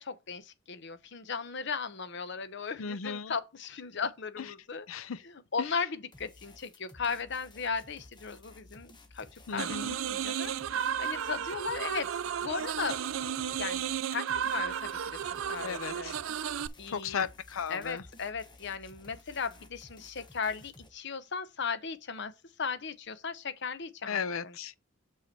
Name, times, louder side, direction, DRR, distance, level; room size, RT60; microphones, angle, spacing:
voice 1, 0.0-4.9 5.2-9.8 10.0-12.1 12.4-13.0 13.6-14.9 15.5-16.1 16.8-17.2 17.7-22.3 22.6-24.5, left 5 dB, 60° left, 0.8 m, -36 dB
voice 2, 2.8-3.3 3.9-4.0 4.4-4.5 4.9-5.2 5.6-5.7 9.5-10.0 15.6-16.1 16.9-18.0 24.1-24.8, left 6 dB, 90° left, 0.6 m, -35 dB
sound 1, 6.1-20.9, left 2 dB, 20° left, 1.1 m, -55 dB
sound 2, 9.6-16.7, right 9 dB, 75° right, 0.4 m, -33 dB
6.8 x 5.3 x 4.3 m
head